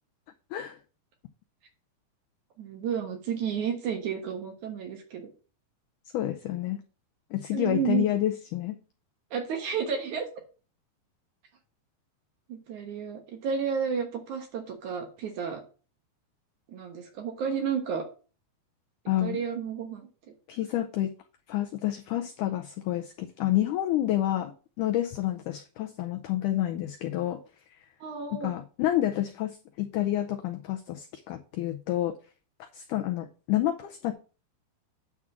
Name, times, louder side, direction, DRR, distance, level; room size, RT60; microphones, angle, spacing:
voice 1, 2.6-5.3 7.5-8.1 9.3-10.3 12.5-15.6 16.7-18.0 19.2-20.1 28.0-28.5, right 7 dB, 60° right, 2.4 m, -31 dB
voice 2, 6.1-6.8 7.3-8.8 19.1-19.4 20.5-21.1 21.5-24.5 24.8-27.4 28.4-32.1 32.7-34.1, left 13 dB, 90° left, 1.8 m, -29 dB
9.7 x 3.7 x 7.2 m
omnidirectional pair, 4.4 m